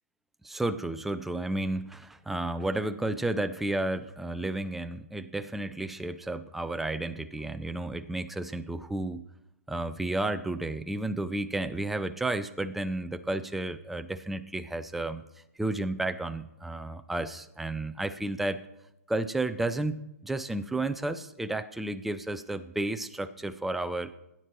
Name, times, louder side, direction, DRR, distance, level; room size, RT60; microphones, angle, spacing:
voice 1, 0.4-9.2 9.7-15.2 15.6-18.6 19.1-24.1, right 2 dB, ahead, 10 dB, 0.3 m, -32 dB
17.0 x 9.6 x 3.0 m, 0.86 s
hypercardioid pair, 145°, 9 cm